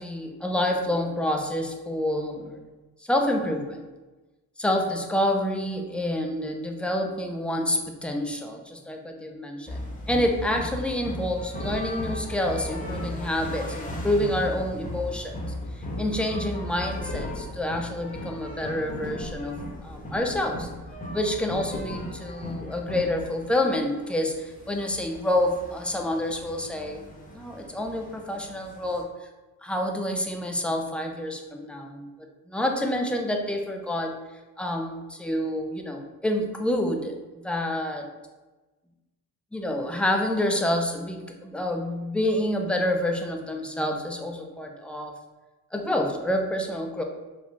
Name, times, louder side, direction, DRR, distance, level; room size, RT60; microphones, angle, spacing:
voice 1, 0.0-2.6 3.1-3.8 4.6-15.5 16.0-20.7 21.1-27.0 27.3-29.1 29.6-34.1 34.6-37.2 37.4-38.1 39.5-45.1 45.7-47.0, left 1 dB, 5° left, 3 dB, 0.4 m, -28 dB
sound 1, 9.7-29.0, equal, 20° left, 1.0 m, -37 dB
sound 2, 11.6-22.5, left 2 dB, 50° left, 0.8 m, -40 dB
3.6 x 2.4 x 3.2 m, 1.2 s
supercardioid pair, 70°, 40 cm